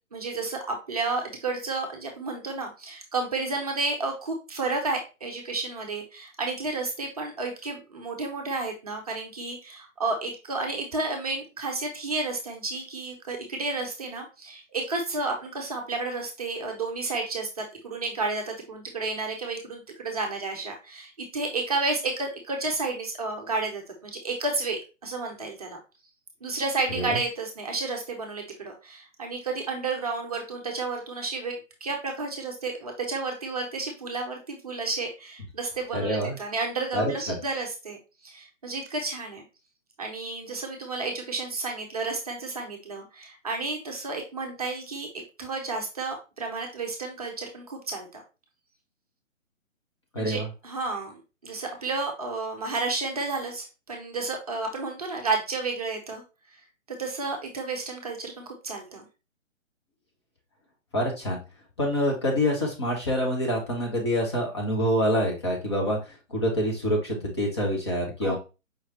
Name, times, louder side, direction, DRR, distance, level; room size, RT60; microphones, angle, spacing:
voice 1, 0.1-25.8 26.4-38.0 38.2-39.4 40.0-48.2 50.2-51.2 51.4-56.2 57.0-59.1 68.2-68.4, right 3 dB, 30° right, 2 dB, 0.7 m, -31 dB
voice 2, 35.9-36.4 36.9-37.4 50.1-50.5 60.9-61.4 61.8-68.4, equal, 20° left, -1 dB, 0.7 m, -26 dB
5.1 x 3.1 x 2.8 m, 0.30 s
figure-of-eight pair, 135°, 39 cm